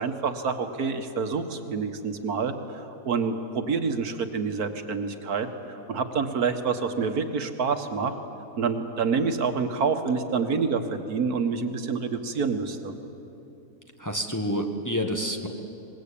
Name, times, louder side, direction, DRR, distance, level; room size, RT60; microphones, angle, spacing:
voice 1, 0.0-8.1 8.6-12.9, right 5 dB, 85° right, 7 dB, 1.8 m, -27 dB
voice 2, 14.0-15.5, equal, 15° left, 3 dB, 1.4 m, -28 dB
24.0 x 20.5 x 8.5 m, 2.8 s
omnidirectional pair, 1.6 m